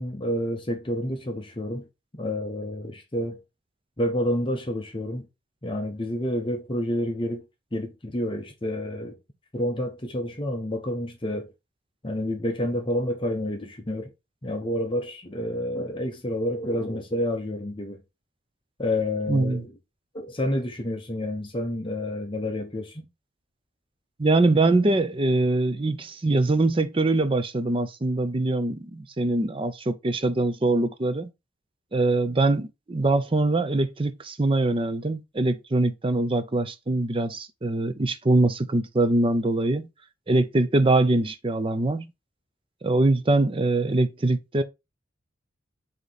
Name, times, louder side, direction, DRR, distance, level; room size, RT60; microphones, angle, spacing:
voice 1, 0.0-1.8 2.1-3.4 4.0-5.3 5.6-7.4 7.7-9.2 9.5-11.5 12.0-14.1 14.4-18.0 18.8-19.6 20.1-23.0, left 1 dB, 25° left, 0.8 m, -29 dB
voice 2, 19.3-19.6 24.2-31.3 31.9-39.9 40.3-42.1 42.8-44.6, right 2 dB, 25° right, 0.5 m, -23 dB
8.1 x 2.9 x 4.1 m
head